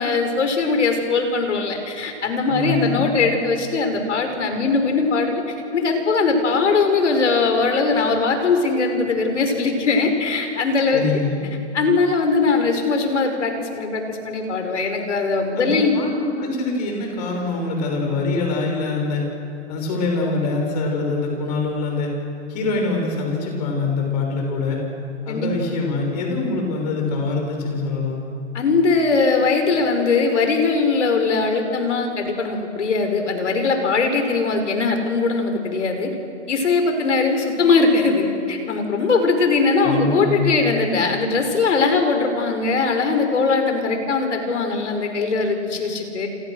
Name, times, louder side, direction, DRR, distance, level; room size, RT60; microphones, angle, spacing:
voice 1, 0.0-5.4 5.7-11.0 11.7-16.0 25.3-25.5 28.5-36.1 36.5-46.3, left 4 dB, 80° left, 5 dB, 5.6 m, -20 dB
voice 2, 2.5-3.0 10.9-11.4 15.6-19.2 19.7-22.1 22.5-24.8 25.2-28.2 39.8-40.5, left 3 dB, 35° left, 1 dB, 6.5 m, -24 dB
29.5 x 28.0 x 6.5 m, 2.6 s
hypercardioid pair, 170°, 35 cm